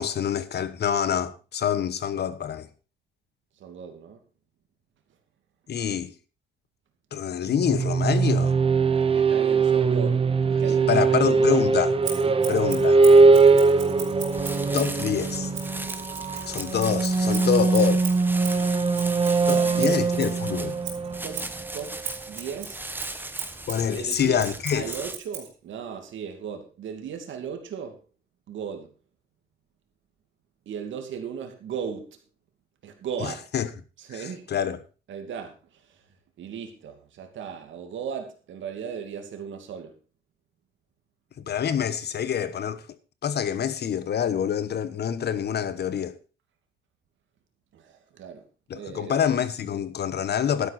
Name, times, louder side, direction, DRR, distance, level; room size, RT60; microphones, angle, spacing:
voice 1, 0.0-2.7 5.7-6.1 7.1-8.6 10.9-11.9 12.5-13.0 14.7-15.5 16.5-18.0 19.5-20.8 23.7-24.8 33.2-33.7 34.5-34.8 41.4-42.8 43.2-46.2 48.7-50.7, left 8 dB, 55° left, 1.2 m, -26 dB
voice 2, 3.6-4.2 9.1-11.6 12.2-12.4 19.5-19.9 21.2-22.8 23.9-28.0 28.5-28.9 30.7-32.2 32.8-33.5 34.0-34.5 35.1-36.0 36.4-39.9 47.7-48.4 48.7-49.2, right 7 dB, 75° right, 2.7 m, -37 dB
sound 1, 7.5-22.1, right 4 dB, 30° right, 1.1 m, -21 dB
Scissors, 12.0-15.0 15.5-20.4 20.8-25.5, right 8 dB, 90° right, 4.3 m, -38 dB
sound 2, 14.3-25.2, right 2 dB, 10° right, 1.2 m, -38 dB
12.0 x 10.5 x 4.3 m
cardioid pair, 90°, 20 cm